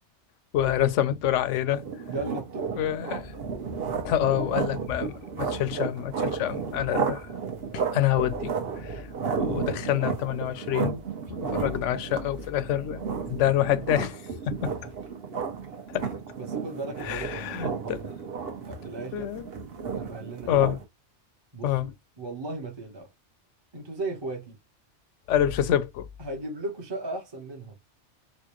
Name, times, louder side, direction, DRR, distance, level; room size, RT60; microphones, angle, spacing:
voice 1, 0.5-1.8 2.8-3.2 4.0-7.3 7.7-9.1 9.4-11.0 11.3-14.7 15.9-16.1 17.0-18.0 19.1-19.5 20.5-20.8 21.6-21.9 25.3-26.1, left 11 dB, 85° left, 0.9 m, -27 dB
sound 1, 1.7-20.8, right 6 dB, 55° right, 1.1 m, -33 dB
voice 2, 2.1-3.0 16.3-18.1 18.6-19.4 19.9-20.6 21.5-23.1 23.7-24.6 26.2-27.8, right 2 dB, 25° right, 0.8 m, -36 dB
4.3 x 2.2 x 3.0 m
omnidirectional pair, 1.2 m